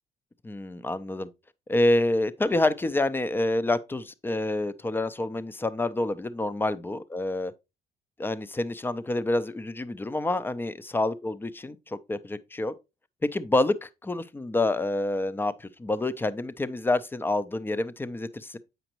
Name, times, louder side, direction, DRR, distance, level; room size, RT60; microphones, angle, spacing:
voice 1, 0.4-1.3 1.7-7.5 8.2-12.7 13.2-18.6, left 2 dB, 10° left, 0.5 m, -27 dB
7.9 x 5.0 x 2.9 m
cardioid pair, 110°, 17 cm